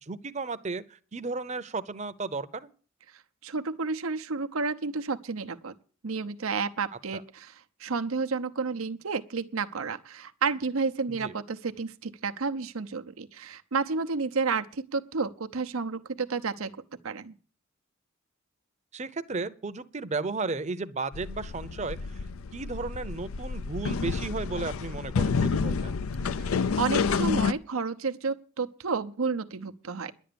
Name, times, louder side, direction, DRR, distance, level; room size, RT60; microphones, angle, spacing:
voice 1, 0.0-2.7 7.1-7.2 11.2-11.3 18.9-22.2 22.5-25.9, right 3 dB, 35° right, 0.7 m, -34 dB
voice 2, 3.4-5.7 6.0-16.8 17.0-17.3 26.2-26.3 26.8-30.1, right 4 dB, 85° right, 0.8 m, -31 dB
sound 1, 21.1-27.5, left 5 dB, 85° left, 0.5 m, -29 dB
11.0 x 9.2 x 6.9 m
head